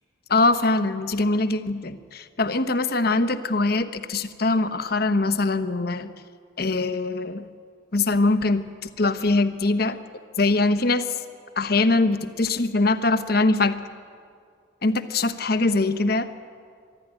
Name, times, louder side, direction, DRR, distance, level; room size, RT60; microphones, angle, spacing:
voice 1, 0.3-6.1 6.6-7.4 7.9-10.0 10.4-11.1 11.6-13.8 14.8-16.3, left 2 dB, 50° left, 10 dB, 0.9 m, -22 dB
25.0 x 12.0 x 10.0 m, 2.2 s
head